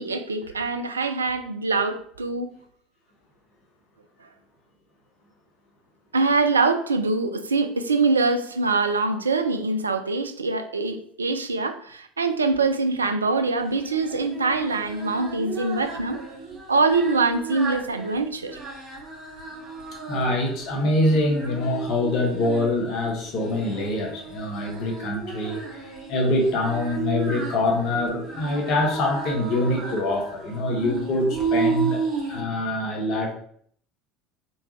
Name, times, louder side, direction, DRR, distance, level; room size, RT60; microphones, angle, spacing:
voice 1, 0.0-2.5 4.2-4.3 6.1-16.2 16.7-18.6, right 3 dB, 80° right, 8 dB, 0.4 m, -24 dB
Singing, 13.6-32.4, right 4 dB, 45° right, 1.6 m, -33 dB
voice 2, 20.1-32.0 32.3-33.3, left 1 dB, 50° left, 1 dB, 1.1 m, -24 dB
4.4 x 3.6 x 3.1 m, 0.62 s
figure-of-eight pair, 65°, 0 cm